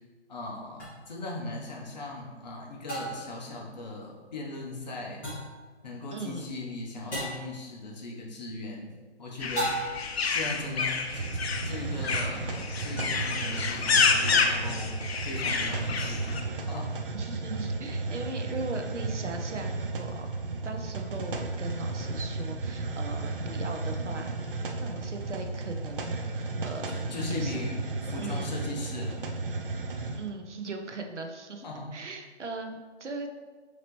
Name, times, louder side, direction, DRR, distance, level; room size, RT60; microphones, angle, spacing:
voice 1, 0.3-5.2 5.8-8.9 9.2-9.8 10.3-11.4 11.6-15.0 15.2-16.3 16.6-16.9 26.9-29.3 31.6-31.9, left 2 dB, 40° left, -2 dB, 1.0 m, -38 dB
sound 1, 0.8-0.9 2.9-3.4 5.2-5.6 7.1-7.5 9.5-10.2, right 1 dB, 5° left, 0.8 m, -33 dB
voice 2, 6.1-6.5 11.6-11.7 17.1-20.3 20.6-24.3 24.8-26.9 27.3-27.6 28.2-28.5 30.2-31.6 31.9-33.4, right 3 dB, 85° right, 4 dB, 0.8 m, -38 dB
sound 2, 9.4-16.4, left 4 dB, 60° left, 0.6 m, -28 dB
Hiss, 11.0-30.3, right 3 dB, 50° right, 0.5 m, -34 dB
5.9 x 2.9 x 3.1 m, 1.4 s
figure-of-eight pair, 150°, 35 cm